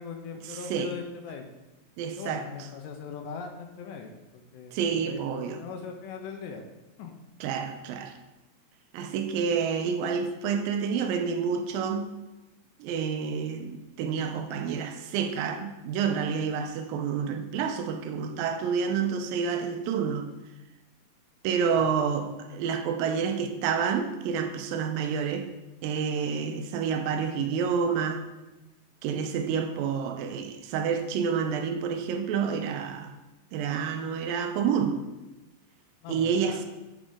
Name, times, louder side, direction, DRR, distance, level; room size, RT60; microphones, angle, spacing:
voice 1, 0.0-1.5 2.2-6.6 7.0-7.2 21.8-21.9 36.0-36.7, left 6 dB, 85° left, 2.2 m, -40 dB
voice 2, 2.0-2.4 4.7-5.6 7.4-8.1 8.9-12.1 12.8-20.3 21.4-25.5 25.8-28.2 29.0-33.1 33.5-35.0 36.1-36.7, right 6 dB, 90° right, 2.3 m, -29 dB
7.3 x 5.1 x 3.6 m
omnidirectional pair, 4.0 m